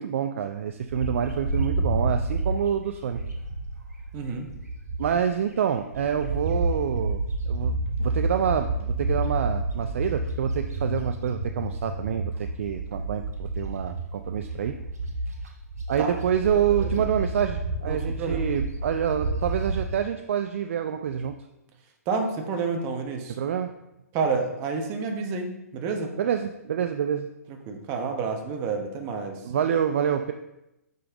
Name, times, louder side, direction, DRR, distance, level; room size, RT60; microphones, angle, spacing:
voice 1, 0.0-3.2 5.0-14.8 15.9-21.4 23.3-23.7 26.2-27.3 29.4-30.3, right 8 dB, 50° right, 8 dB, 0.4 m, -27 dB
Bird, 0.9-5.4 5.8-20.0, right 2 dB, 75° right, 1.8 m, -30 dB
voice 2, 4.1-4.5 16.0-16.1 16.5-17.1 17.9-18.5 22.1-23.4 24.1-26.1 27.7-29.4, right 4 dB, 30° right, 3 dB, 1.1 m, -29 dB
6.6 x 5.4 x 3.7 m, 0.91 s
figure-of-eight pair, 120°, 9 cm